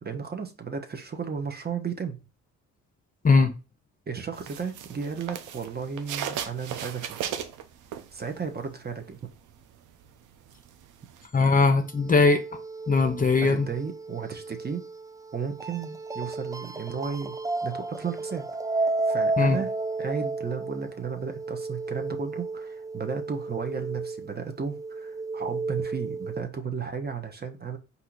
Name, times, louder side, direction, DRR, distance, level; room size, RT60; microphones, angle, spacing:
voice 1, 0.0-2.2 4.1-7.2 8.1-9.2 13.4-14.8 15.3-17.4 17.6-18.5 18.8-19.7 20.0-27.8, right 6 dB, 35° right, 0.9 m, -34 dB
sound 1, 4.3-8.5 8.9-11.3, right 9 dB, 85° right, 0.6 m, -36 dB
voice 2, 11.3-12.4 12.9-13.7 19.4-19.6, left 4 dB, 30° left, 0.7 m, -20 dB
sound 2, 12.0-26.4, right 3 dB, 10° right, 0.3 m, -33 dB
4.5 x 2.8 x 3.9 m
cardioid pair, 90°, 30 cm